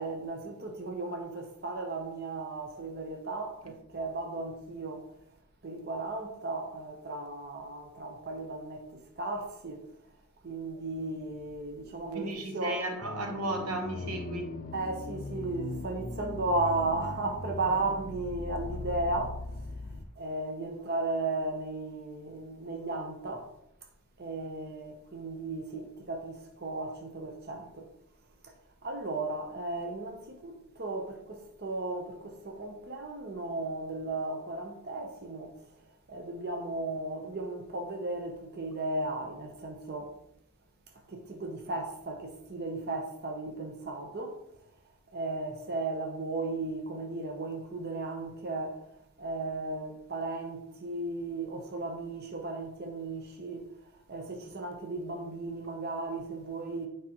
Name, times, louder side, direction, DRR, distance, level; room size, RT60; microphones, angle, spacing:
voice 1, 0.0-5.1 5.6-9.8 10.4-12.8 14.7-19.8 20.2-23.5 24.2-27.9 28.4-28.5 28.8-35.6 36.1-40.2 41.1-44.4 45.1-48.8 49.2-53.6 54.1-56.9, right 2 dB, 45° right, 0.7 m, -35 dB
voice 2, 12.1-14.6, right 2 dB, 85° right, 1.0 m, -35 dB
sound 1, 13.0-20.0, left 3 dB, 35° left, 0.4 m, -39 dB
8.3 x 4.8 x 3.0 m
head